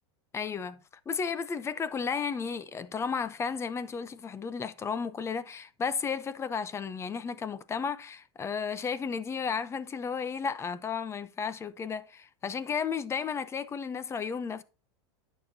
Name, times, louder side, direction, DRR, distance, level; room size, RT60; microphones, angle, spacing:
voice 1, 0.3-0.8 1.1-14.6, left 6 dB, 20° left, 0.7 m, -33 dB
10.5 x 6.8 x 2.8 m
supercardioid pair, 125°, 14 cm